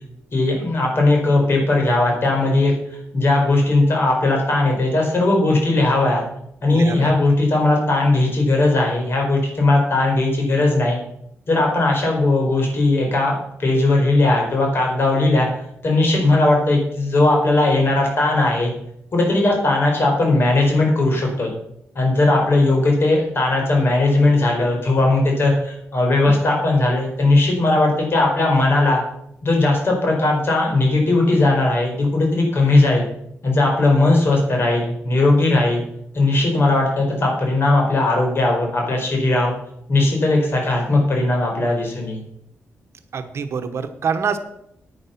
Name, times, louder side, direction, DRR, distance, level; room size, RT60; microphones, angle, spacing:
voice 1, 0.3-2.7 3.1-6.2 6.6-11.0 11.5-13.3 13.6-15.5 15.8-18.7 19.1-21.5 21.9-29.0 29.4-33.0 33.4-35.8 36.1-39.5 39.9-42.2, left 2 dB, 50° left, 0 dB, 4.6 m, -18 dB
voice 2, 6.7-7.1 43.1-44.4, right 6 dB, 60° right, 9 dB, 1.1 m, -25 dB
9.7 x 9.6 x 5.9 m, 0.74 s
cardioid pair, 100°, 5 cm